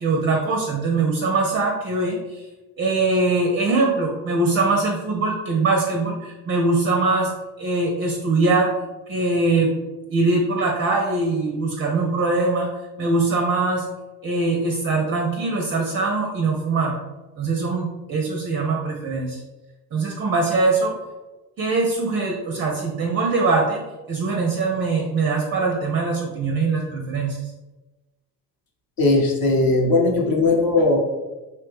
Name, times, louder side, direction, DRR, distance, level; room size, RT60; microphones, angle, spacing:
voice 1, 0.0-2.4 2.8-7.3 7.6-8.7 9.1-9.7 10.1-12.7 13.0-13.8 14.2-16.9 17.4-19.4 19.9-20.9 21.6-27.4, right 3 dB, 25° right, 1 dB, 0.4 m, -22 dB
voice 2, 29.0-31.0, left 2 dB, 45° left, -1 dB, 0.8 m, -18 dB
2.8 x 2.1 x 3.3 m, 1.1 s
hypercardioid pair, 55°, 49 cm